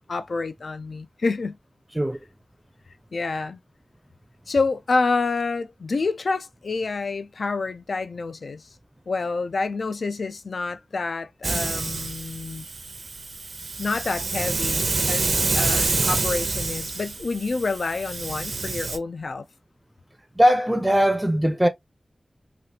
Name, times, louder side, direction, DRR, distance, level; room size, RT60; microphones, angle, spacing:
voice 1, 0.1-1.6 3.1-3.6 4.5-8.6 9.1-12.7 13.8-19.5, left 3 dB, 70° left, 0.3 m, -28 dB
Hiss, 11.4-19.0, right 3 dB, 70° right, 0.6 m, -27 dB
voice 2, 20.4-21.7, equal, 10° right, 0.5 m, -20 dB
3.3 x 2.4 x 2.7 m
wide cardioid pair, 100°, 0 cm